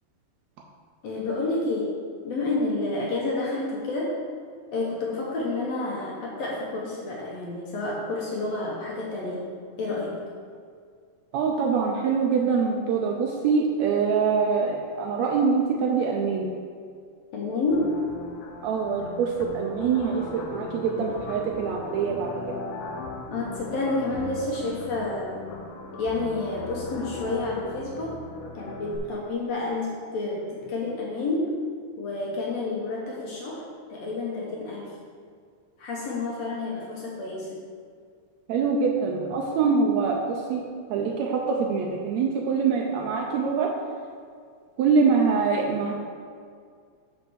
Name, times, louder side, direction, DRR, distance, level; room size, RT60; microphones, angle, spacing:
voice 1, 1.0-1.9 2.2-4.2 4.7-9.5 9.8-10.2 17.3-18.0 23.3-25.4 25.9-28.2 28.5-31.6 32.0-34.9 35.8-37.5, left 2 dB, 65° left, -3 dB, 1.8 m, -29 dB
voice 2, 11.3-16.5 18.6-22.5 38.5-40.6 40.9-43.7 44.8-45.9, right 5 dB, 90° right, 0 dB, 1.5 m, -24 dB
sound 1, 17.7-29.0, left 3 dB, 90° left, 2.5 m, -39 dB
6.5 x 5.6 x 6.2 m, 2.1 s
omnidirectional pair, 3.9 m